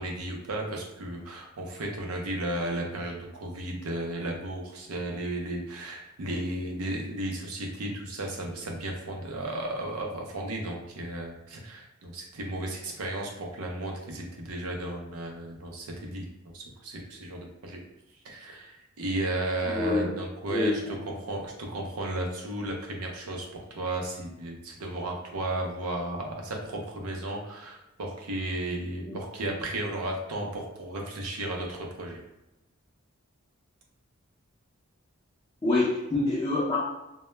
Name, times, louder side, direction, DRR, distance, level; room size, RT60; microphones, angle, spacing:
voice 1, 0.0-16.3 16.5-17.8 18.2-20.8 21.1-32.2, right 1 dB, 85° right, 1 dB, 0.6 m, -34 dB
voice 2, 19.6-20.2 20.5-20.7 29.1-29.2 35.6-36.8, left 2 dB, 25° left, -6 dB, 0.4 m, -26 dB
2.1 x 2.1 x 3.0 m, 0.95 s
head